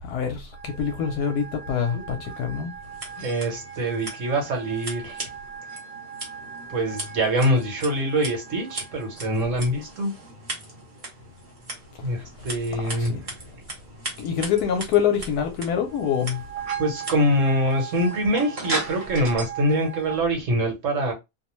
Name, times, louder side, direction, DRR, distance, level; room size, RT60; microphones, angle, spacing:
voice 1, 0.0-2.7 3.2-3.3 12.0-12.1 12.8-13.2 14.2-16.4, left 8 dB, 75° left, 1.0 m, -25 dB
sound 1, 0.5-10.4 15.8-20.2, right 8 dB, 80° right, 1.2 m, -39 dB
Scissors, 2.8-19.4, right 2 dB, 35° right, 1.0 m, -38 dB
voice 2, 3.2-5.3 6.7-10.1 12.0-13.6 16.8-21.1, right 1 dB, 55° right, 1.2 m, -24 dB
2.7 x 2.0 x 3.0 m
omnidirectional pair, 1.7 m